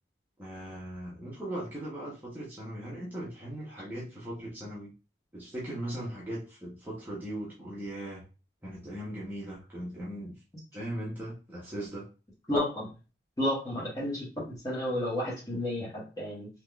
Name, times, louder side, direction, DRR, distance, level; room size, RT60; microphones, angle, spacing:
voice 1, 0.4-4.9 5.3-8.2 8.6-10.4 10.7-12.1, right 1 dB, 10° right, -8 dB, 0.9 m, -39 dB
voice 2, 12.5-12.9 13.4-16.5, left 1 dB, 20° left, -6 dB, 1.3 m, -31 dB
3.5 x 3.0 x 2.3 m, 0.33 s
head